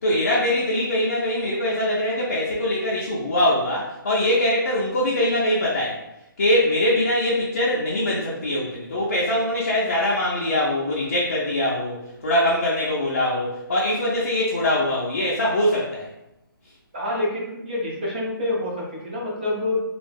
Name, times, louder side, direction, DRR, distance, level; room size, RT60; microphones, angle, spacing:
voice 1, 0.0-5.9 6.4-16.1, left 1 dB, 35° left, -6 dB, 0.4 m, -22 dB
voice 2, 16.9-19.8, left 2 dB, 25° right, -4 dB, 0.6 m, -27 dB
2.3 x 2.1 x 3.3 m, 0.91 s
hypercardioid pair, 175°, 12 cm